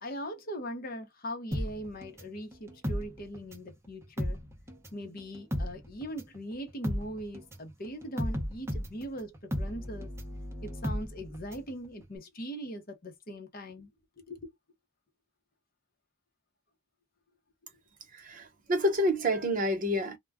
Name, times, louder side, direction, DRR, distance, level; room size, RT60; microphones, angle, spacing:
voice 1, 0.0-4.4 4.9-10.1 10.6-13.9 14.3-14.5, equal, 40° left, 0.8 m, -40 dB
sound 1, 1.5-3.7 4.0-11.7 12.0-12.1, equal, 10° right, 0.5 m, -35 dB
voice 2, 18.1-20.2, equal, 35° right, 0.9 m, -28 dB
2.2 x 2.2 x 3.4 m
head